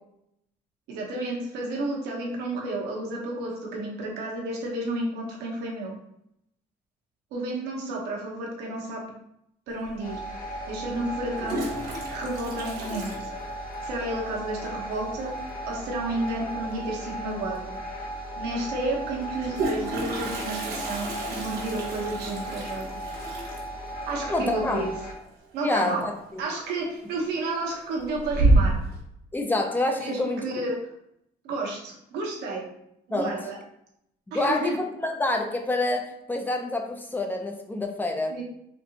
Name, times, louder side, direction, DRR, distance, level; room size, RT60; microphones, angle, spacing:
voice 1, 0.9-5.9 7.3-9.0 9.7-10.2 10.7-11.6 12.1-13.3 13.8-15.3 15.7-17.7 18.4-23.0 24.1-24.9 25.5-26.1 26.4-28.7 30.0-30.8 31.4-32.7 33.1-33.6 34.3-34.8 38.3-38.4, right 2 dB, 85° right, -1 dB, 1.0 m, -31 dB
Toilet flush, 9.8-9.9 11.1-14.0 14.2-14.3 14.6-14.7 15.0-15.4 17.1-17.2 17.5-17.6 19.2-25.9 26.2-26.6 27.0-27.6 28.0-29.0, right 2 dB, 70° right, 1.2 m, -29 dB
sound 1, 10.0-25.1, right 1 dB, 55° left, 1.0 m, -36 dB
voice 2, 24.3-24.9 25.6-26.4 29.3-30.4 33.1-33.3 34.3-38.4, left 2 dB, 10° left, 3 dB, 0.5 m, -27 dB
4.1 x 2.7 x 2.8 m, 0.78 s
cardioid pair, 110°, 17 cm